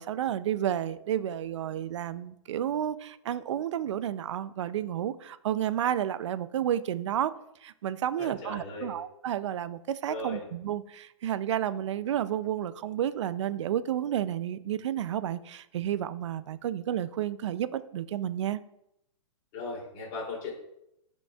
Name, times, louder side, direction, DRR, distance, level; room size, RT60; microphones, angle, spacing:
voice 1, 0.0-7.3 7.6-18.6, right 10 dB, 60° right, 15 dB, 0.4 m, -31 dB
voice 2, 8.2-8.9 10.1-10.4 19.5-20.5, left 3 dB, 30° left, -2 dB, 2.8 m, -37 dB
13.0 x 5.2 x 2.4 m, 0.81 s
hypercardioid pair, 165°, 17 cm